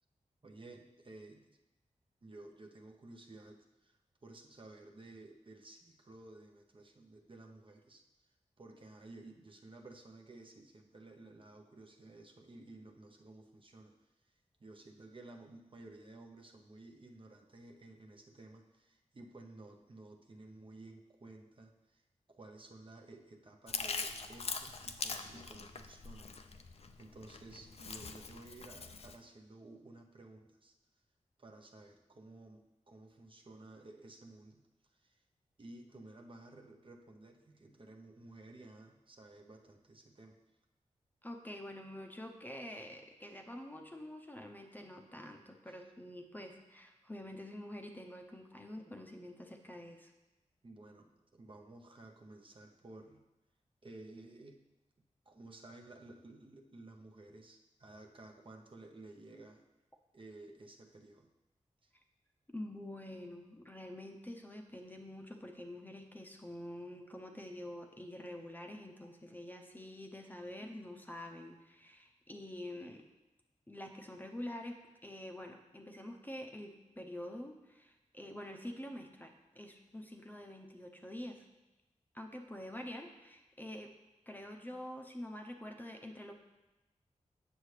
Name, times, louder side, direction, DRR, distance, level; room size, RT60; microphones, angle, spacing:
voice 1, 0.4-1.6 2.2-8.0 8.6-13.9 14.6-22.0 22.3-30.7 31.4-35.2 35.6-40.4 45.7-45.8 50.6-53.2 53.8-54.6 55.2-59.7 60.1-61.3 61.8-61.9, right 2 dB, 45° right, 2 dB, 0.8 m, -54 dB
Chewing mastication, 23.7-29.2, left 4 dB, 55° left, 0.5 m, -43 dB
voice 2, 41.2-50.1 62.5-73.0 73.7-81.4 82.1-83.9 84.3-86.3, left 1 dB, 15° left, 3 dB, 0.7 m, -47 dB
8.2 x 6.7 x 3.3 m, 1.0 s
wide cardioid pair, 85°, 13 cm